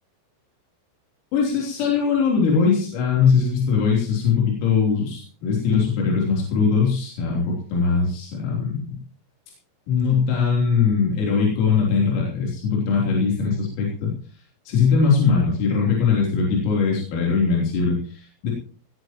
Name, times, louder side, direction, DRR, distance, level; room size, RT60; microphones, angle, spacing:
voice 1, 1.3-8.9 9.9-14.1 14.7-18.5, left 5 dB, 90° left, -3 dB, 6.2 m, -21 dB
19.0 x 18.0 x 3.0 m, 0.41 s
omnidirectional pair, 5.9 m